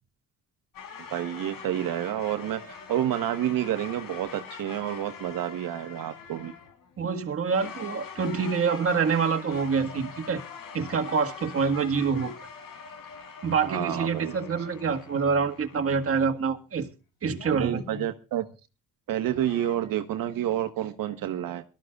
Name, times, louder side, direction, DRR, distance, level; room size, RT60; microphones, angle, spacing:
sound 1, 0.7-7.2 7.5-16.2 17.3-18.1 19.3-19.8, left 6 dB, 80° left, 3.7 m, -44 dB
voice 1, 1.1-6.5 13.6-14.3 17.5-18.5 19.1-21.6, right 11 dB, 85° right, 1.3 m, -29 dB
voice 2, 7.0-10.4 10.7-12.4 13.4-16.9 17.2-17.8, right 5 dB, 45° right, 1.7 m, -26 dB
22.5 x 13.0 x 2.4 m
cardioid pair, 100°, 33 cm